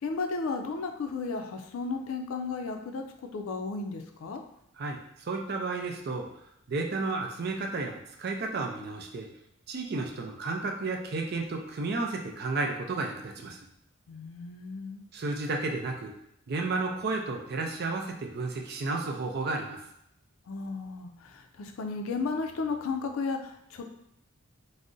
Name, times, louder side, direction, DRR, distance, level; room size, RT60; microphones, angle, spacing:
voice 1, 0.0-3.0 3.3-4.4 14.1-15.0 20.5-23.9, left 4 dB, 80° left, 5 dB, 0.4 m, -34 dB
voice 2, 4.8-6.3 6.7-9.3 9.7-13.6 15.1-16.1 16.5-19.8, right 3 dB, 50° right, 3 dB, 0.4 m, -32 dB
2.5 x 2.0 x 3.6 m, 0.76 s
head